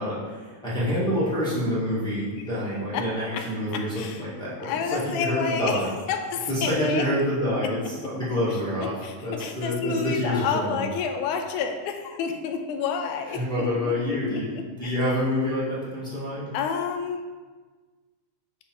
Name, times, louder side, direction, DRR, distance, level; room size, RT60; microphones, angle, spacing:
voice 1, 0.0-5.9 6.5-8.9 9.2-10.9 13.3-16.5, left 1 dB, 5° left, -10 dB, 0.6 m, -27 dB
voice 2, 3.7-4.3 4.6-5.8 6.1-7.0 8.8-14.2 14.6-14.9 16.5-17.2, left 6 dB, 80° left, 4 dB, 2.0 m, -29 dB
8.2 x 3.1 x 4.3 m, 1.4 s
omnidirectional pair, 3.5 m